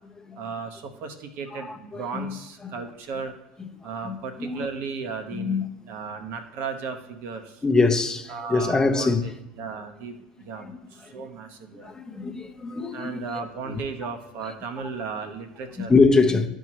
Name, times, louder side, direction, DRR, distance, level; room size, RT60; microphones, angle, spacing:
voice 1, 0.4-3.3 3.8-5.6 5.9-7.6 8.3-9.3 9.6-10.1 10.4-10.7 10.9-11.9 12.9-15.9, right 5 dB, 55° right, 1.0 m, -35 dB
voice 2, 1.5-2.3 4.0-4.7 5.3-5.6 7.6-9.2 10.6-10.8 11.0-11.2 11.7-13.2 14.5-14.6 15.9-16.5, left 3 dB, 15° left, 0.8 m, -23 dB
12.0 x 4.6 x 3.0 m
hypercardioid pair, 75°, 4 cm